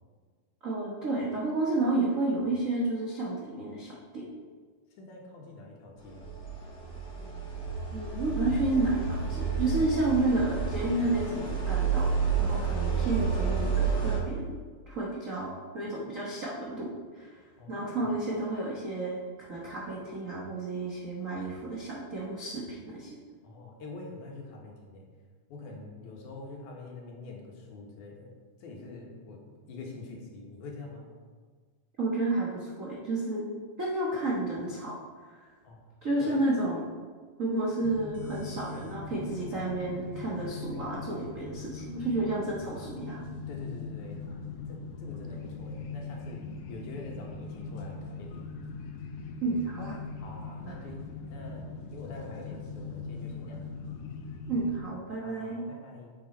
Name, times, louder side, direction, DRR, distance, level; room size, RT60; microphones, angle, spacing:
voice 1, 0.6-4.2 7.9-14.6 14.9-16.9 17.1-17.3 17.7-23.1 32.0-33.5 33.8-34.9 35.3-35.4 36.0-36.8 37.4-43.2 49.4-50.0 50.6-50.9 54.5-55.6, right 2 dB, 80° right, -5 dB, 0.7 m, -31 dB
voice 2, 5.0-6.3 17.6-18.1 23.4-25.0 25.5-28.3 28.6-31.1 35.6-35.8 36.2-36.4 43.5-46.4 46.7-48.5 50.2-53.6 55.2-56.1, left 3 dB, 75° left, -1 dB, 2.9 m, -45 dB
sound 1, 6.1-14.2, right 6 dB, 30° left, 1.6 m, -30 dB
sound 2, 37.8-54.8, left 4 dB, 90° left, 2.5 m, -41 dB
9.0 x 7.6 x 4.3 m, 1.5 s
omnidirectional pair, 3.6 m